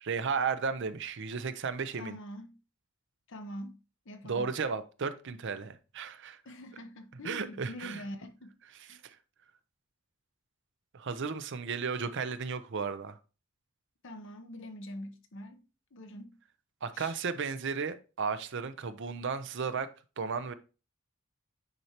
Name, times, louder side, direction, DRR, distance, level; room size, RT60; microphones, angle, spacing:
voice 1, 0.0-2.2 4.3-6.4 7.2-8.0 8.9-9.2 10.9-13.2 16.8-19.9 20.2-20.5, right 5 dB, 55° right, 0.6 m, -34 dB
voice 2, 2.0-2.6 3.3-3.8 4.1-4.5 6.4-8.5 8.9-9.0 14.0-15.6 15.9-16.4 16.9-17.1, left 1 dB, 60° left, 0.9 m, -44 dB
9.5 x 4.4 x 2.9 m
head